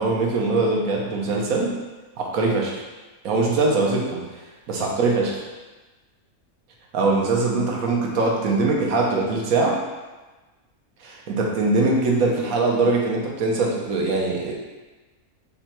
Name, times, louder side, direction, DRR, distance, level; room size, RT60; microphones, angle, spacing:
voice 1, 0.0-1.8 2.2-2.8 3.2-4.2 4.7-5.4 6.9-9.8 11.0-14.5, right 3 dB, 70° right, -1 dB, 1.2 m, -22 dB
5.4 x 2.3 x 4.3 m, 1.2 s
omnidirectional pair, 1.6 m